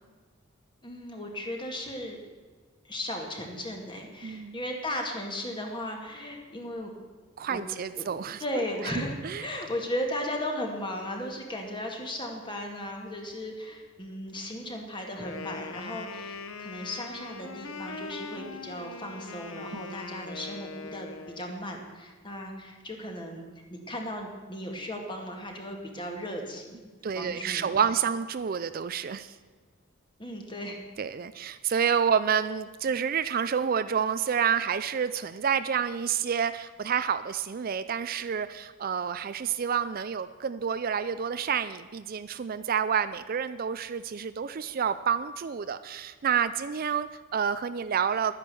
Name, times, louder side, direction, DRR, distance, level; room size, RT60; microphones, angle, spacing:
voice 1, 0.8-2.2 2.8-6.9 7.5-7.7 8.0-8.1 8.4-23.4 23.7-26.8 27.1-27.8 30.2-30.8, left 1 dB, 25° left, 2 dB, 2.0 m, -36 dB
voice 2, 4.2-4.6 7.4-8.4 9.2-9.5 19.7-19.8 27.0-29.3 31.0-48.3, right 7 dB, 45° right, 12 dB, 0.4 m, -29 dB
Wind instrument woodwind instrument, 15.2-21.4, left 4 dB, 80° left, 1.0 m, -41 dB
11.5 x 9.9 x 6.9 m, 1.4 s
head